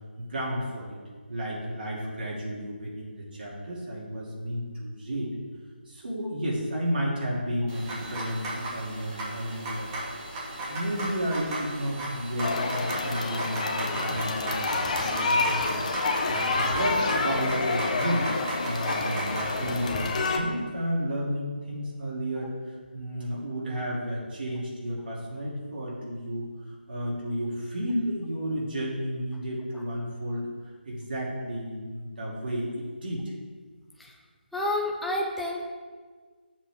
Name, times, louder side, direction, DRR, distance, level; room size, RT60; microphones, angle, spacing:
voice 1, 0.2-1.0 1.3-5.3 5.9-9.9 10.7-15.7 16.3-18.3 18.6-22.5 22.9-30.5 30.8-33.2, equal, 60° right, -5 dB, 2.8 m, -32 dB
sound 1, 7.7-19.9, right 1 dB, 20° right, 1.7 m, -36 dB
sound 2, 12.4-20.4, left 3 dB, 40° left, 0.9 m, -28 dB
voice 2, 34.5-35.6, left 1 dB, ahead, -3 dB, 0.4 m, -29 dB
9.9 x 7.2 x 3.5 m, 1.5 s
figure-of-eight pair, 160°, 6 cm